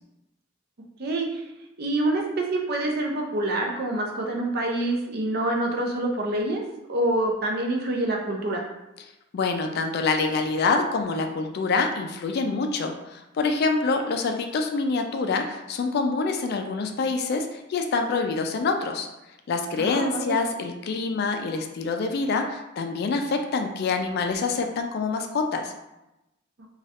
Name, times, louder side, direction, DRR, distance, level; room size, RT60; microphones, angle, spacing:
voice 1, 1.0-1.4 1.8-6.6 6.9-8.6 19.8-20.4, right 1 dB, 50° right, 1 dB, 0.5 m, -26 dB
voice 2, 9.3-19.1 19.5-25.7, left 4 dB, 50° left, 5 dB, 0.3 m, -26 dB
3.1 x 2.3 x 2.8 m, 0.95 s
head